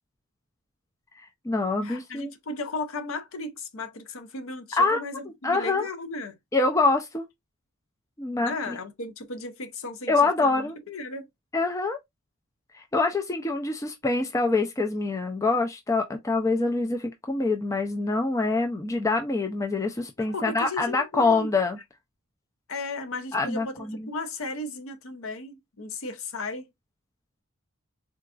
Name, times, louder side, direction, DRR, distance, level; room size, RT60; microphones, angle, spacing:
voice 1, 1.2-2.3 4.8-5.0 5.4-5.9 6.5-7.3 8.2-8.8 10.1-10.8 11.5-12.0 12.7-21.8 23.3-24.1, left 3 dB, 15° left, 0.3 m, -25 dB
voice 2, 1.8-6.4 8.4-10.1 10.4-11.3 20.2-21.5 22.7-26.7, left 3 dB, 65° left, 0.6 m, -35 dB
3.8 x 2.4 x 2.3 m
head